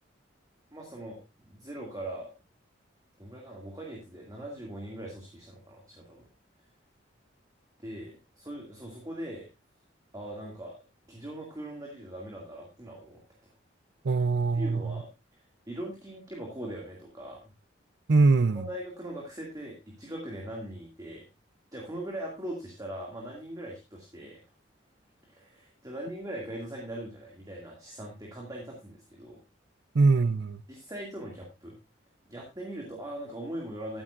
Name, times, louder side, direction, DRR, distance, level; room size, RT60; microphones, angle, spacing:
voice 1, 0.7-1.2 1.5-2.3 3.2-6.3 7.8-9.5 10.1-10.8 11.1-13.5 14.5-15.1 15.7-17.4 18.5-21.3 21.7-24.4 25.2-29.4 30.7-31.8 32.3-34.0, right 1 dB, 20° right, 2.3 m, -40 dB
voice 2, 14.0-15.0 18.1-18.7 29.9-30.6, right 3 dB, 60° right, 0.6 m, -23 dB
14.0 x 8.8 x 2.5 m
head